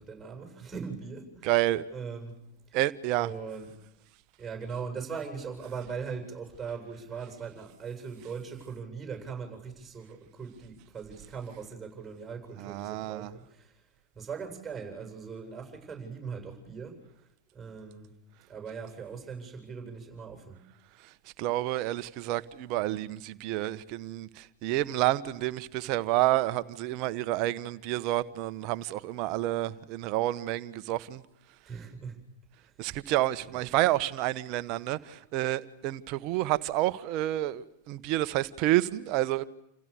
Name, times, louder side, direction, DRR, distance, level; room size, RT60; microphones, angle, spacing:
voice 1, 0.0-1.5 1.9-2.4 2.7-2.8 3.2-3.8 4.4-13.8 14.1-17.0 17.5-18.1 18.5-20.6 31.6-32.2 32.6-32.7 33.4-33.7, right 5 dB, 15° right, 7.7 m, -40 dB
voice 2, 1.4-1.8 2.7-3.3 12.6-13.3 21.4-31.2 32.8-39.4, right 15 dB, 40° right, 1.4 m, -29 dB
29.5 x 29.0 x 7.0 m
figure-of-eight pair, 90°, 0 cm